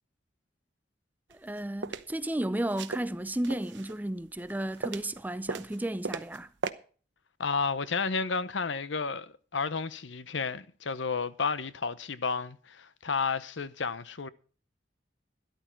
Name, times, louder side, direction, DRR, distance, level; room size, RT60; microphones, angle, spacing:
voice 1, 1.3-6.5, right 1 dB, 10° right, 0.5 m, -33 dB
sound 1, 1.3-2.1 2.7-4.0 4.4-5.2 5.5-6.4 6.6-6.7, right 4 dB, 80° right, 0.9 m, -36 dB
voice 2, 7.4-14.3, left 5 dB, 85° left, 0.8 m, -32 dB
13.0 x 11.5 x 4.4 m
head